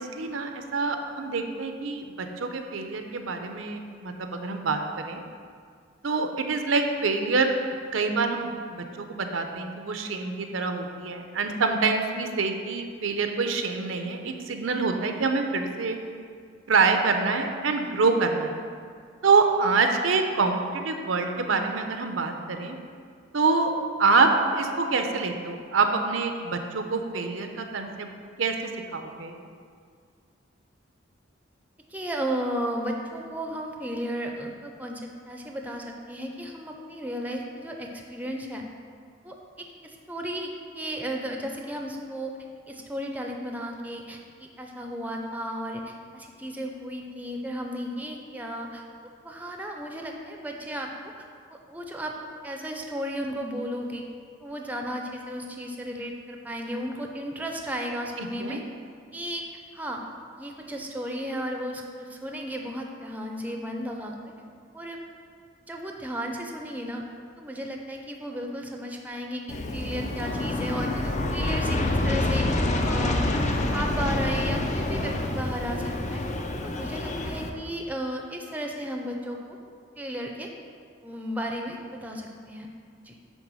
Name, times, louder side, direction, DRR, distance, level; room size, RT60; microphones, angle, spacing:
voice 1, 0.0-5.2 6.0-7.6 7.9-16.0 16.7-18.5 19.2-22.8 23.3-23.7 24.0-28.1 28.4-28.5 28.9-29.4 58.2-58.6, right 4 dB, 75° right, 5 dB, 0.6 m, -26 dB
voice 2, 31.9-38.7 39.2-40.5 40.7-42.3 42.7-48.8 49.2-52.1 52.4-54.0 54.4-58.6 59.1-59.4 59.7-60.0 60.4-64.1 64.7-65.0 65.7-67.0 67.4-76.2 76.6-79.6 80.0-80.5 81.0-82.7 83.0-83.2, equal, 10° right, 2 dB, 0.6 m, -34 dB
Aircraft, 69.5-77.5, left 2 dB, 35° left, 0.6 m, -27 dB
9.1 x 3.5 x 6.2 m, 2.1 s
head